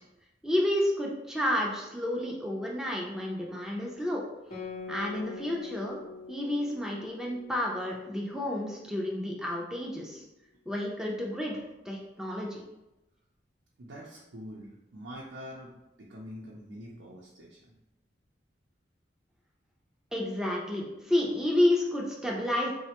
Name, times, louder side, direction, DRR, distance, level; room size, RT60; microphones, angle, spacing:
voice 1, 0.4-4.2 4.9-6.0 6.3-10.2 10.7-12.6 20.1-22.7, left 1 dB, 5° right, -3 dB, 0.5 m, -30 dB
Guitar, 4.5-9.4, left 4 dB, 45° left, 0.7 m, -45 dB
voice 2, 13.8-17.8, equal, 85° right, -5 dB, 0.5 m, -45 dB
4.1 x 2.1 x 2.9 m, 0.94 s
head